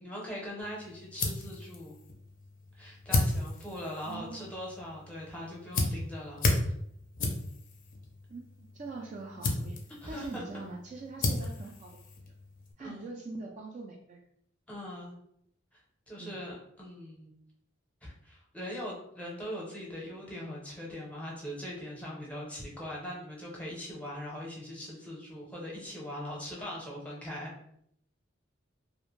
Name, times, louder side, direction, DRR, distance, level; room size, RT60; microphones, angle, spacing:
voice 1, 0.0-2.0 2.7-6.5 10.0-10.4 12.8-13.1 14.7-15.2 15.7-15.8 16.1-17.3 18.0-27.5, equal, 5° left, -4 dB, 0.7 m, -41 dB
sound 1, 0.6-12.7, left 2 dB, 45° left, 0.4 m, -35 dB
voice 2, 4.0-4.4 8.3-9.8 10.1-12.0 12.8-14.2 16.2-16.4, right 3 dB, 40° right, 1 dB, 0.3 m, -43 dB
2.4 x 2.1 x 3.0 m, 0.72 s
head